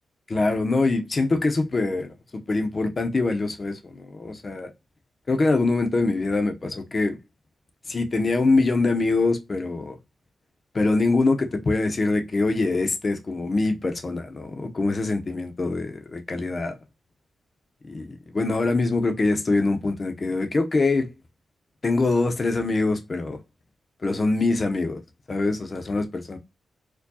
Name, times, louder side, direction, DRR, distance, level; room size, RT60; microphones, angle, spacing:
voice 1, 0.3-2.1 2.5-4.7 5.3-7.2 7.9-10.0 10.7-16.8 17.9-18.1 18.3-21.1 21.8-23.4 24.0-25.0 25.3-26.4, left 3 dB, 35° left, 0.6 m, -24 dB
4.4 x 2.2 x 2.7 m
wide cardioid pair, 115°, 0 cm